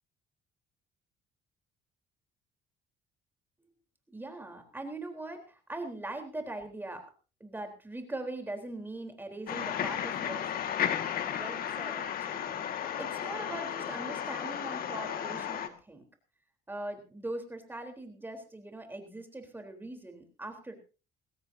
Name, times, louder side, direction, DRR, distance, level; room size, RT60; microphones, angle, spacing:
voice 1, 4.1-7.1 7.4-10.7 11.3-16.0 16.7-20.8, right 2 dB, 10° right, 4 dB, 3.8 m, -41 dB
sound 1, 9.5-15.7, left 9 dB, 60° left, 1.9 m, -34 dB
21.0 x 16.5 x 2.8 m, 0.34 s
cardioid pair, 110°, 17 cm